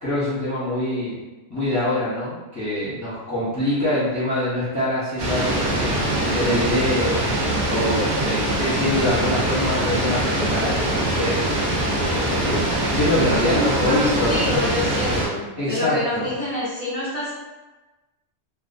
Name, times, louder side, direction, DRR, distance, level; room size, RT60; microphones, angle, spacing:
voice 1, 0.0-1.1 1.5-7.2 7.6-14.5 15.6-16.3, left 1 dB, 20° left, -11 dB, 0.6 m, -25 dB
sound 1, 5.2-15.3, right 1 dB, 55° right, 0.8 m, -23 dB
voice 2, 13.8-17.3, left 1 dB, 30° right, -11 dB, 0.9 m, -26 dB
2.5 x 2.4 x 2.5 m, 1.1 s
omnidirectional pair, 1.3 m